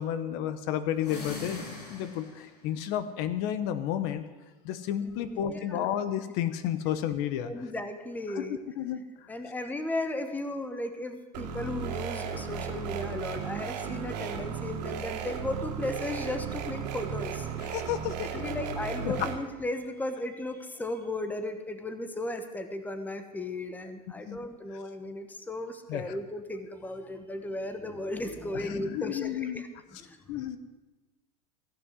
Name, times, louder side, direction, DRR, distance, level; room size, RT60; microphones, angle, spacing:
voice 1, 0.0-4.2 4.6-7.5 8.3-9.3 17.6-18.4 19.0-19.3 24.3-24.4 25.9-26.0 28.5-29.6 30.3-30.6, left 10 dB, 55° left, 12 dB, 0.9 m, -32 dB
sound 1, 0.9-2.6, left 3 dB, 90° left, 3.8 m, -41 dB
voice 2, 5.0-5.9 7.4-8.6 9.3-17.5 18.3-30.4, left 2 dB, 10° left, 8 dB, 1.1 m, -36 dB
sound 2, 11.3-19.4, right 7 dB, 80° right, 2.2 m, -35 dB
15.5 x 6.1 x 9.5 m, 1.2 s
supercardioid pair, 125°, 21 cm